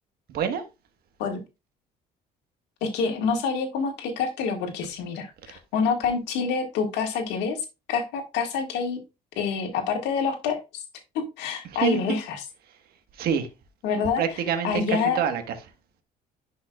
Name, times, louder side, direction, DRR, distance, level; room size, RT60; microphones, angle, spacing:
voice 1, 0.3-0.6 11.6-12.2 12.6-12.8 13.1-13.5 13.9-15.6, right 8 dB, 65° right, 1.4 m, -27 dB
voice 2, 2.8-7.6 7.9-9.0 9.4-10.8 11.1-12.4 13.8-14.2 14.6-15.2, left 5 dB, 90° left, 1.9 m, -27 dB
10.5 x 5.5 x 2.4 m
cardioid pair, 110°, 17 cm